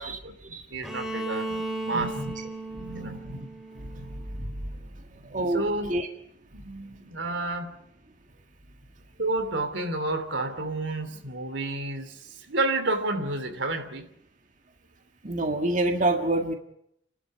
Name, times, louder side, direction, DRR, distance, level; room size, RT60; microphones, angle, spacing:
voice 1, 0.0-1.5 1.8-2.2 2.7-3.2 5.5-5.9 6.5-7.8 9.2-14.1, right 2 dB, 85° right, 7 dB, 3.0 m, -30 dB
Bowed string instrument, 0.8-4.7, right 2 dB, ahead, 2.7 m, -36 dB
voice 2, 1.9-2.3 2.8-3.5 3.8-4.5 5.2-5.6 5.9-6.1 15.2-16.6, right 2 dB, 45° right, 4 dB, 1.8 m, -28 dB
30.0 x 12.5 x 9.3 m, 0.75 s
head